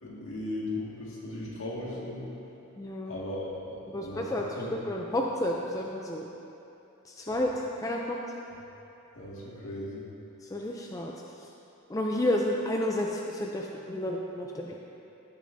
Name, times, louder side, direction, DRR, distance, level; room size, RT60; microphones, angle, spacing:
voice 1, 0.0-2.3 3.1-4.7 7.2-7.4 9.1-10.0, left 1 dB, 65° left, -6 dB, 1.9 m, -37 dB
voice 2, 2.8-3.2 3.9-4.6 4.9-6.3 7.0-7.5 7.8-8.2 10.4-11.5 11.9-14.8, left 1 dB, 15° left, -1 dB, 0.4 m, -31 dB
15.5 x 6.6 x 2.6 m, 2.9 s
head